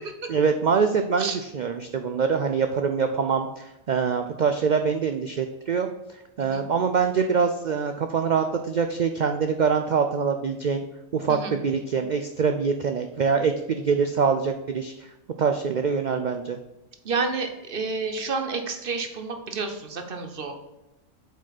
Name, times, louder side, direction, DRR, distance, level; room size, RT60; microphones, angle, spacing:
voice 1, 0.3-5.9 6.4-10.8 11.1-15.1 15.4-16.6, right 5 dB, 80° right, 6 dB, 0.4 m, -24 dB
voice 2, 17.0-20.5, right 4 dB, 45° right, 5 dB, 1.1 m, -29 dB
7.9 x 5.2 x 4.1 m, 0.98 s
omnidirectional pair, 1.4 m